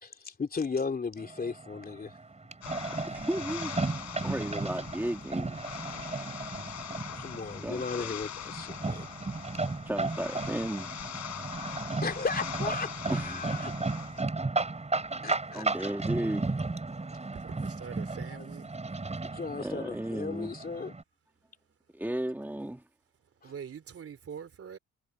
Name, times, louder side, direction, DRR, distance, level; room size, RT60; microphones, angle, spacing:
voice 1, 0.0-2.1 7.1-9.0 12.0-13.7 15.2-15.9 18.3-18.5 19.2-20.9 23.4-23.5, left 4 dB, 30° left, 3.1 m, -36 dB
sound 1, 1.2-21.0, right 3 dB, 20° right, 6.1 m, -35 dB
sound 2, 2.6-14.2, left 10 dB, 65° left, 4.4 m, -42 dB
voice 2, 3.0-3.7 4.2-5.6 7.6-8.2 9.8-10.9 13.1-13.5 15.5-16.5 19.6-20.5 21.9-22.8, right 1 dB, 5° right, 2.4 m, -34 dB
voice 3, 17.3-18.8 23.4-24.8, right 7 dB, 50° right, 3.7 m, -44 dB
cardioid pair, 90°, 30 cm